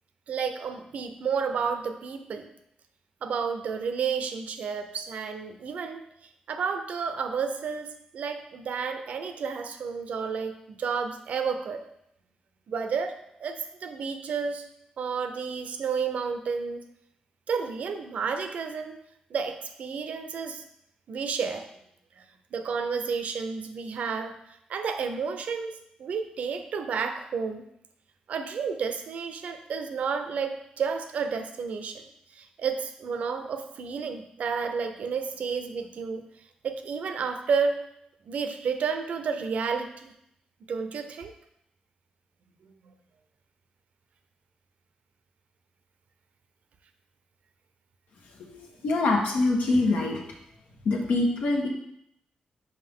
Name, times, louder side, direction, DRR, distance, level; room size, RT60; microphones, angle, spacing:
voice 1, 0.3-2.5 3.2-6.0 6.5-11.8 12.7-14.7 15.0-16.8 17.5-19.0 19.3-20.6 21.1-21.7 22.2-22.3 22.5-24.3 24.7-27.6 28.3-36.2 36.6-37.8 38.3-40.1 40.7-41.3, right 5 dB, 65° right, 7 dB, 0.6 m, -31 dB
voice 2, 48.5-50.2 50.8-51.7, left 2 dB, 75° left, 0 dB, 1.2 m, -24 dB
5.5 x 5.1 x 3.6 m, 0.76 s
cardioid pair, 120°, 3 cm